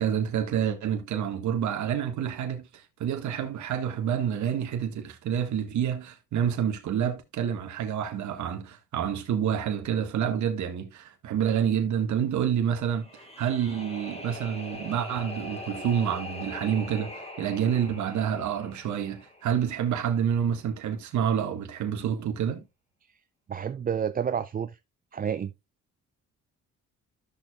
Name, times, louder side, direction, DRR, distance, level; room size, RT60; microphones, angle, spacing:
voice 1, 0.0-22.6, right 8 dB, 75° right, 1.8 m, -28 dB
sound 1, 12.9-20.0, left 1 dB, 20° left, 3.5 m, -42 dB
voice 2, 23.5-24.8 25.1-25.5, right 8 dB, 30° right, 0.4 m, -29 dB
13.5 x 6.6 x 2.4 m
cardioid pair, 90°, 30 cm